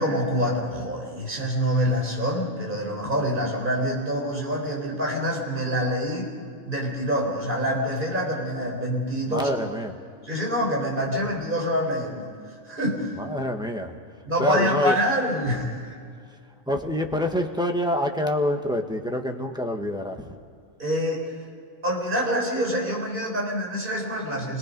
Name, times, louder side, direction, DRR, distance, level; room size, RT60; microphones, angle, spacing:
voice 1, 0.0-6.3 6.7-9.5 10.2-12.3 12.7-13.2 14.2-15.9 20.8-21.2 21.8-24.6, equal, 45° right, -1 dB, 4.4 m, -26 dB
voice 2, 9.3-9.9 13.2-13.9 14.4-15.0 16.7-20.3, left 1 dB, 5° right, 3 dB, 1.4 m, -26 dB
28.5 x 18.5 x 5.4 m, 2.2 s
omnidirectional pair, 1.2 m